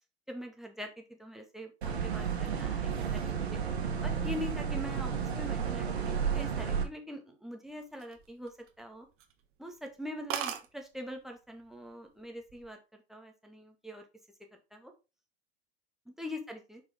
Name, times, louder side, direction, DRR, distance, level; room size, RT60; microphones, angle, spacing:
voice 1, 0.3-3.6 4.0-9.1 9.6-14.0 14.7-14.9 16.2-16.8, left 1 dB, ahead, 2 dB, 2.0 m, -43 dB
sound 1, 1.8-6.8, right 6 dB, 75° right, 1.9 m, -32 dB
sound 2, 7.8-8.8 9.2-9.4 9.8-9.9 10.0-10.1 10.3-10.7 11.6-11.9 12.2-12.7, right 8 dB, 40° right, 1.4 m, -37 dB
5.6 x 4.8 x 5.1 m, 0.28 s
hypercardioid pair, 95°, 32 cm